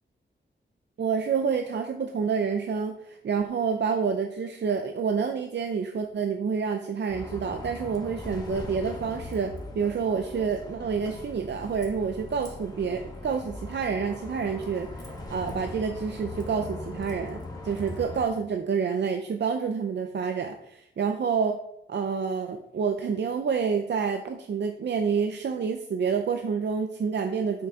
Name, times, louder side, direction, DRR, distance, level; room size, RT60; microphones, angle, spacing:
voice 1, 1.0-21.6 21.9-27.7, right 6 dB, 65° right, 6 dB, 0.6 m, -28 dB
Bus, 7.1-18.3, left 2 dB, 20° left, 1.5 m, -40 dB
7.7 x 6.2 x 3.6 m, 0.76 s
wide cardioid pair, 130°, 20 cm